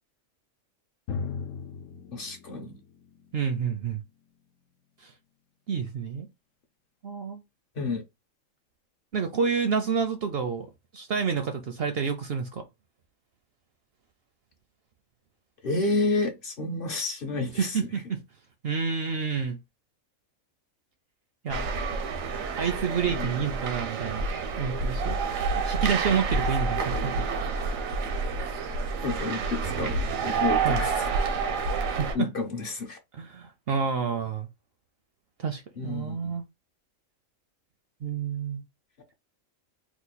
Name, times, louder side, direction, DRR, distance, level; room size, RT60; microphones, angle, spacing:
Drum, 1.1-4.6, left 5 dB, 80° left, 1.0 m, -38 dB
voice 1, 2.1-2.8 7.7-8.0 15.6-18.0 23.1-23.3 29.0-31.1 32.1-33.0 35.8-36.4, left 3 dB, 55° left, 0.7 m, -30 dB
voice 2, 3.3-4.0 5.0-5.1 5.7-6.3 7.0-7.4 9.1-10.7 10.9-12.6 17.6-18.2 18.6-19.6 21.4-21.6 22.6-24.2 24.6-25.2 25.6-27.1 30.6-30.8 31.9-32.3 33.1-34.5 35.4-36.4 38.0-38.6, right 6 dB, 65° right, 0.6 m, -29 dB
sound 1, 21.5-32.2, right 4 dB, 85° right, 1.2 m, -28 dB
3.0 x 2.4 x 3.9 m
omnidirectional pair, 1.4 m